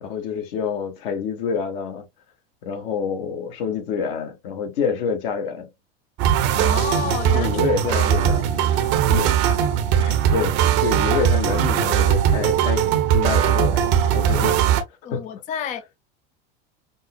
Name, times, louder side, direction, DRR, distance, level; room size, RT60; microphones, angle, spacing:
voice 1, 0.0-2.1 2.6-5.7 7.0-9.6 10.0-13.8 14.1-14.6 15.1-15.2, left 6 dB, 70° left, 1.3 m, -27 dB
sound 1, 6.2-14.8, right 9 dB, 55° right, 0.8 m, -19 dB
voice 2, 6.5-8.8 9.1-9.2 15.0-16.0, left 8 dB, 25° left, 0.4 m, -32 dB
5.2 x 2.1 x 2.3 m
supercardioid pair, 110°, 30 cm